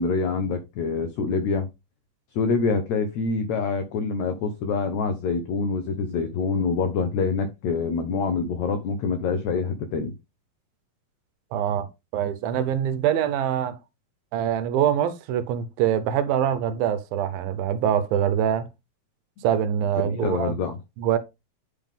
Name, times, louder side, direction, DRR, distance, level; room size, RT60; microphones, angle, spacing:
voice 1, 0.0-1.7 2.3-10.1 20.0-20.8, left 4 dB, 85° left, 1.6 m, -26 dB
voice 2, 11.5-11.9 12.1-13.8 14.3-18.7 19.4-20.5 21.0-21.2, right 9 dB, 80° right, 2.5 m, -24 dB
10.0 x 3.6 x 3.6 m
omnidirectional pair, 4.2 m